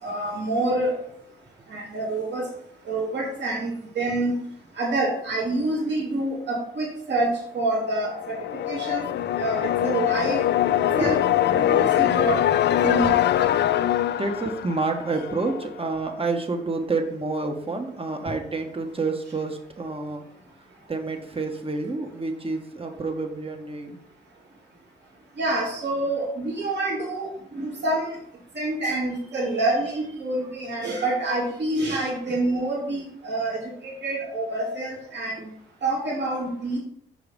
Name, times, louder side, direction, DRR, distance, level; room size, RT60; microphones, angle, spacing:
voice 1, 0.0-1.0 1.7-2.5 2.9-4.4 4.8-7.3 7.5-8.1 8.5-9.1 9.4-10.4 11.0-11.2 11.5-12.6 12.8-13.2 25.4-28.2 28.5-35.4 35.8-36.8, right 2 dB, 55° right, -4 dB, 2.8 m, -27 dB
sound 1, 7.9-15.7, left 12 dB, 55° left, 0.4 m, -23 dB
voice 2, 10.8-11.2 11.6-12.0 12.8-12.9 14.2-20.2 20.9-24.0, right 3 dB, 25° right, 4 dB, 1.4 m, -29 dB
5.9 x 4.9 x 5.2 m, 0.69 s
supercardioid pair, 55°, 21 cm